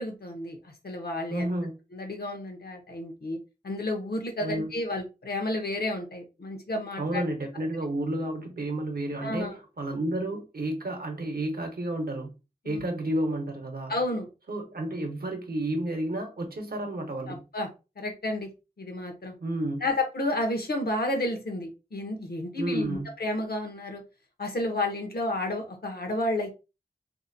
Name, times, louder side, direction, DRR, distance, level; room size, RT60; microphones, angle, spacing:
voice 1, 0.0-1.5 1.9-3.4 3.6-7.2 9.2-9.5 12.6-12.9 13.9-14.3 17.3-17.7 18.0-18.5 18.8-19.3 19.8-24.0 24.4-26.5, left 1 dB, 70° left, 0.7 m, -31 dB
voice 2, 1.3-1.7 4.4-4.8 7.0-12.3 12.6-13.9 14.5-17.4 19.4-19.8 22.6-23.1, right 1 dB, 70° right, 0.7 m, -31 dB
2.7 x 2.1 x 2.6 m
wide cardioid pair, 65°, 17 cm